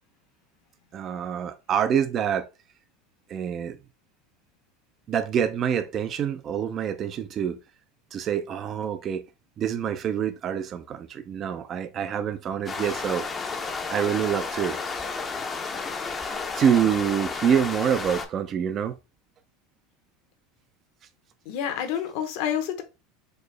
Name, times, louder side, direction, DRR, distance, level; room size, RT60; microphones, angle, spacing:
voice 1, 0.9-2.5 3.3-3.8 5.1-7.6 8.1-9.2 9.6-13.3 13.9-14.8 16.5-18.9, right 8 dB, 35° right, 0.3 m, -26 dB
sound 1, 12.7-18.3, left 4 dB, 20° left, 0.5 m, -32 dB
voice 2, 21.5-22.8, left 9 dB, 70° left, 0.9 m, -28 dB
4.2 x 2.0 x 3.2 m
supercardioid pair, 125°, 0 cm